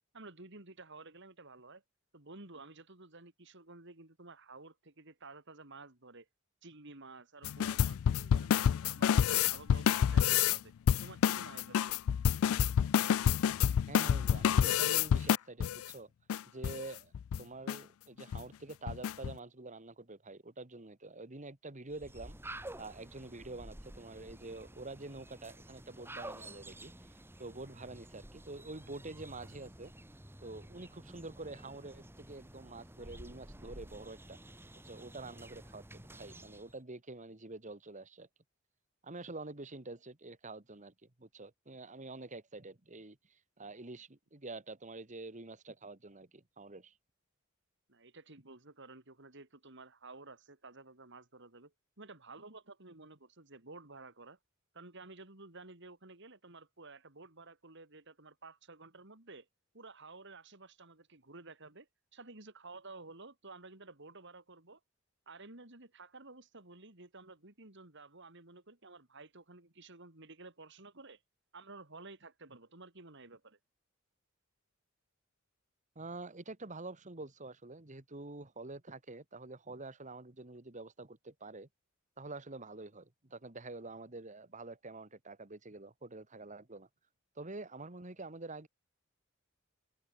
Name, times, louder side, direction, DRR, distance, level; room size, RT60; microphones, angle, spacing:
voice 1, 0.1-1.8 2.1-6.3 6.6-10.7 11.0-12.0 47.9-54.4 54.7-59.5 59.7-64.8 65.3-71.2 71.5-73.6, right 3 dB, 60° right, 3.6 m, -53 dB
sound 1, 7.4-10.6 10.9-15.8 16.3-16.4 16.6-16.8 17.1-17.4 17.7-17.8 18.2-18.4 18.9-19.3, left 8 dB, 85° left, 0.3 m, -28 dB
voice 2, 13.9-16.1 16.5-17.1 17.4-29.9 30.4-34.4 34.9-38.3 39.0-46.9 76.0-81.7 82.2-86.9 87.4-88.7, right 2 dB, 35° right, 1.9 m, -47 dB
sound 2, 21.9-36.8, right 1 dB, 10° right, 2.6 m, -51 dB
head